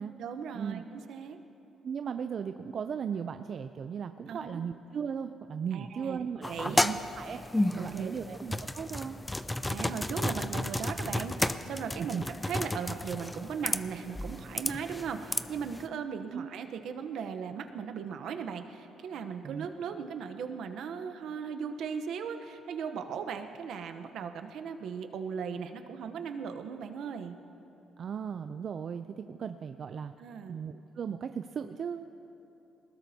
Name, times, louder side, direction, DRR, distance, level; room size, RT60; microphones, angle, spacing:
voice 1, 0.2-1.4 4.3-4.6 5.7-6.2 6.4-6.8 7.7-8.4 9.7-27.3 30.2-30.6, right 6 dB, 75° right, 7 dB, 0.8 m, -38 dB
voice 2, 1.8-7.4 7.8-9.2 12.0-12.2 16.3-16.5 19.4-19.7 28.0-30.1 30.5-32.1, right 7 dB, 55° right, 9 dB, 0.4 m, -37 dB
sound 1, 6.4-15.9, left 1 dB, 10° left, 0.5 m, -33 dB
21.5 x 19.0 x 2.8 m, 3.0 s
cardioid pair, 90°, 0 cm